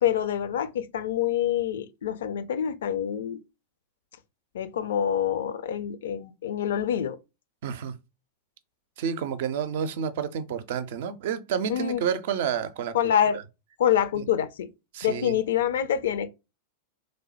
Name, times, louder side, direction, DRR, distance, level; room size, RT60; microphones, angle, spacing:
voice 1, 0.0-3.4 4.5-7.2 11.7-12.0 12.9-13.4 13.8-14.7 15.0-16.3, left 9 dB, 60° left, 0.4 m, -26 dB
voice 2, 7.6-8.0 9.0-13.0 13.3-13.4 14.1-14.3 14.9-15.4, right 8 dB, 55° right, 0.4 m, -30 dB
3.2 x 2.1 x 4.0 m
figure-of-eight pair, 90°, 0 cm